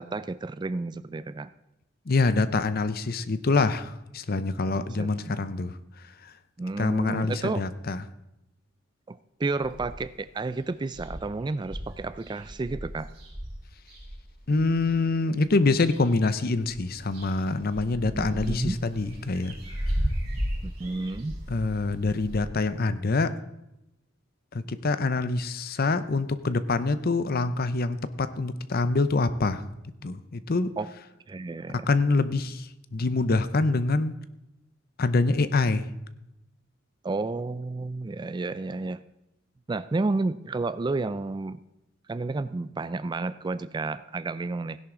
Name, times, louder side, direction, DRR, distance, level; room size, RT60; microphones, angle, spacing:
voice 1, 0.0-1.5 4.6-5.3 6.6-7.7 9.1-13.1 18.1-18.8 20.6-21.4 30.8-30.9 31.3-31.9 37.0-39.0 39.7-41.6 42.1-44.8, right 3 dB, 20° right, 15 dB, 0.3 m, -31 dB
voice 2, 2.1-5.7 6.8-8.0 14.5-19.6 21.5-23.3 24.5-29.6 30.0-30.7 31.9-34.1 35.0-35.9, left 3 dB, 50° left, 13 dB, 0.7 m, -25 dB
sound 1, 9.6-10.2 10.6-10.7 10.9-14.9 15.5-16.3 16.6-22.5, equal, 55° right, 5.2 m, -35 dB
16.5 x 10.5 x 3.8 m, 0.89 s
head